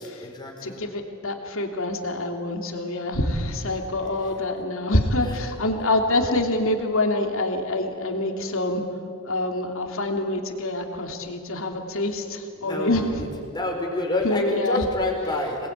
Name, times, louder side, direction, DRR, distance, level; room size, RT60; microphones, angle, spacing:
voice 1, 0.0-0.8 4.2-4.3 5.2-5.4 12.6-15.7, left 2 dB, 20° left, 1 dB, 5.0 m, -28 dB
voice 2, 0.6-8.8 9.2-13.2 14.2-14.8, left 1 dB, 65° left, 3 dB, 3.1 m, -26 dB
27.0 x 21.0 x 9.5 m, 2.6 s
head